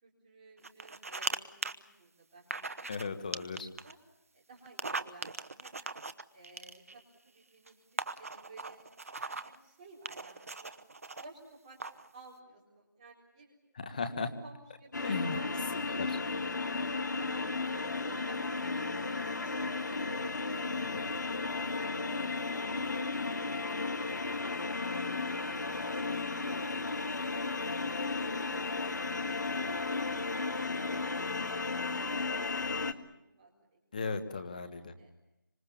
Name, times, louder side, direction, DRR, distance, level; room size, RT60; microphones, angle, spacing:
voice 1, 0.0-2.9 3.3-3.5 3.8-4.0 4.3-6.0 6.3-7.7 8.1-8.8 9.1-10.7 11.2-11.8 12.1-13.6 14.4-16.0 16.3-18.8 19.1-21.4 21.7-22.2 25.4-26.0 31.8-33.8 34.3-34.4 35.0-35.1, right 2 dB, 15° right, -3 dB, 4.1 m, -55 dB
sound 1, 0.6-1.4 1.6-1.7 2.5-3.1 3.3-3.9 4.7-7.0 7.7-7.8 8.0-9.6 10.1-11.2 11.8-12.1, right 3 dB, 45° right, 1.0 m, -39 dB
voice 2, 2.9-3.7 13.7-14.3 15.0-15.4 16.0-16.1 20.9-21.0 33.9-34.9, left 4 dB, 25° left, 9 dB, 1.5 m, -36 dB
sound 2, 14.9-32.9, left 3 dB, 60° left, 1.8 m, -34 dB
26.0 x 26.0 x 7.1 m, 0.85 s
figure-of-eight pair, 170°, 11 cm